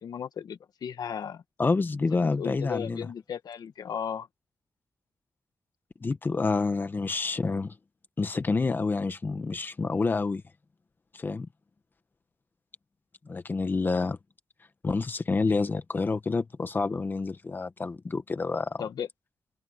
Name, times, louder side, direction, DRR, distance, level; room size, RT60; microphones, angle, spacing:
voice 1, 0.0-1.4 2.1-4.3 15.5-15.6 18.8-19.1, left 8 dB, 70° left, 1.3 m, -36 dB
voice 2, 1.6-3.0 6.0-7.7 8.2-10.4 11.1-11.5 13.3-14.2 14.8-18.8, left 4 dB, 30° left, 1.1 m, -28 dB
open air
wide cardioid pair, 165°, 7 cm